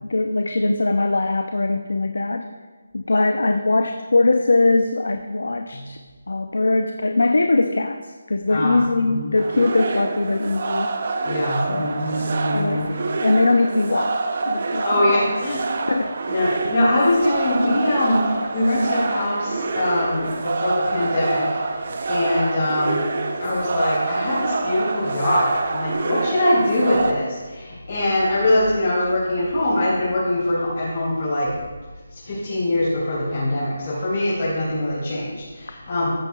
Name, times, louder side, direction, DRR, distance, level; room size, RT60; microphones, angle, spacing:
voice 1, 0.0-2.5 2.9-6.0 6.3-8.0 8.3-10.9 11.7-14.1 14.4-15.1 15.9-16.2, left 2 dB, 80° left, 6 dB, 0.6 m, -21 dB
sound 1, 9.4-27.1, right 3 dB, 35° right, 0.6 m, -26 dB
voice 2, 11.2-12.9 14.8-15.6 16.3-21.5 22.1-23.0 23.4-31.5 32.2-36.1, left 1 dB, 45° left, -8 dB, 3.3 m, -22 dB
14.5 x 9.0 x 2.3 m, 1.3 s
figure-of-eight pair, 175°, 0 cm